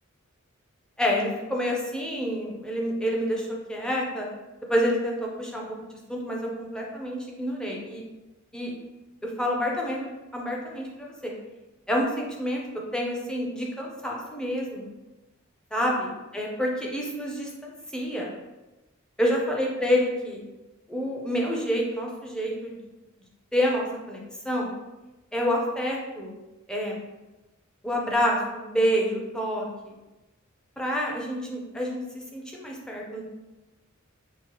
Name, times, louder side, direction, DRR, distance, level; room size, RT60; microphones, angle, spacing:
voice 1, 1.0-4.3 4.7-5.7 6.1-8.0 8.5-8.7 9.2-11.3 11.9-12.6 12.9-14.9 15.7-18.3 19.2-20.4 20.9-22.8 23.5-24.2 24.4-24.7 25.3-26.3 26.7-27.0 27.8-29.9 30.8-32.0 32.3-33.2, equal, 5° left, -2 dB, 0.6 m, -28 dB
5.6 x 2.0 x 2.9 m, 1.1 s
head